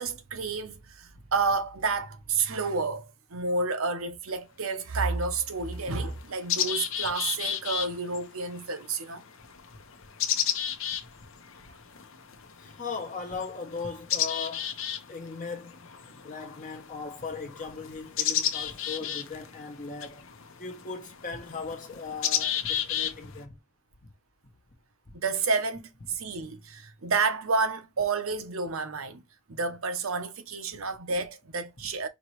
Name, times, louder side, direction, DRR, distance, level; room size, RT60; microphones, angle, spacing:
voice 1, 0.0-9.2 25.2-29.2 29.5-32.1, right 4 dB, 75° right, 0.9 m, -30 dB
sound 1, 4.3-4.4 5.2-5.3 5.7-23.4, left 9 dB, 65° left, 0.8 m, -33 dB
voice 2, 12.5-14.8 15.1-15.8 16.1-20.3 20.6-23.6 25.1-25.2, left 4 dB, 35° left, 0.9 m, -38 dB
5.1 x 3.0 x 3.0 m
head